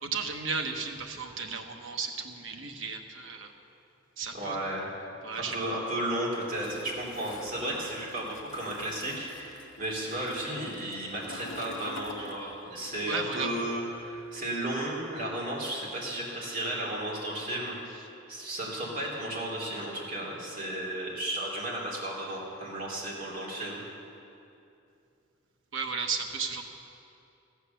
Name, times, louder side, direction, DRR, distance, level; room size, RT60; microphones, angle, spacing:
voice 1, 0.0-3.5 4.2-4.6 5.2-5.7 13.1-13.5 25.7-26.6, right 5 dB, 90° right, 4 dB, 1.1 m, -34 dB
voice 2, 4.3-4.9 5.4-17.7 18.3-23.8, right 1 dB, 45° right, -3 dB, 3.1 m, -34 dB
Toilet flush, 6.5-12.9 13.2-14.8, left 3 dB, 75° left, 0.9 m, -47 dB
14.5 x 8.2 x 7.0 m, 2.7 s
head